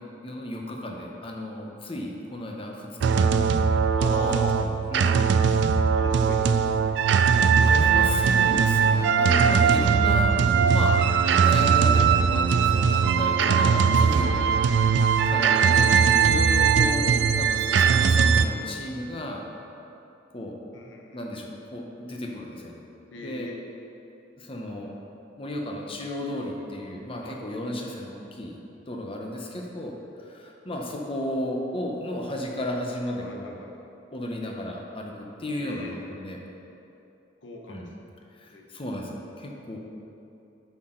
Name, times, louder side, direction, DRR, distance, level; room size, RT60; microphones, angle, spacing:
voice 1, 0.2-3.4 4.2-5.4 7.6-10.4 10.7-11.0 11.4-14.5 15.3-19.5 20.3-20.6 21.1-22.8 23.2-23.5 24.4-24.9 25.4-28.6 28.9-33.6 34.1-36.4 37.7-37.9 38.4-39.8, left 1 dB, 30° left, 1 dB, 0.8 m, -34 dB
sound 1, 3.0-18.5, right 6 dB, 65° right, 0.3 m, -20 dB
voice 2, 3.4-4.6 5.9-6.6 7.6-8.1 12.5-13.2 15.6-16.1 20.7-21.4 23.1-23.6 27.2-27.4 33.2-33.8 35.6-36.0 37.4-38.1 38.5-38.7, left 2 dB, 85° left, 0 dB, 0.9 m, -40 dB
8.1 x 6.1 x 3.8 m, 2.8 s
head